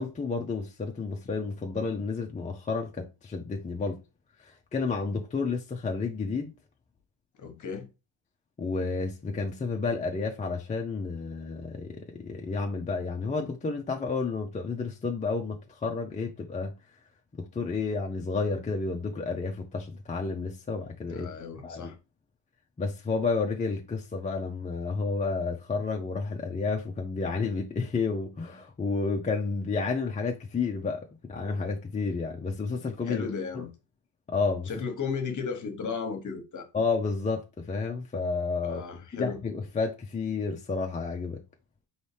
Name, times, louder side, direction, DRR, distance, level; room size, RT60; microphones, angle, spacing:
voice 1, 0.0-4.0 4.7-6.5 8.6-16.7 17.4-21.3 21.6-21.9 22.8-31.0 31.3-33.3 33.5-33.6 34.3-34.7 36.7-38.8 39.1-41.4, left 4 dB, 15° left, 0.4 m, -31 dB
voice 2, 7.4-7.9 21.1-21.9 33.0-33.7 34.7-36.7 38.6-39.4, left 5 dB, 40° left, 1.1 m, -35 dB
4.1 x 3.2 x 3.3 m
cardioid pair, 115°, 49 cm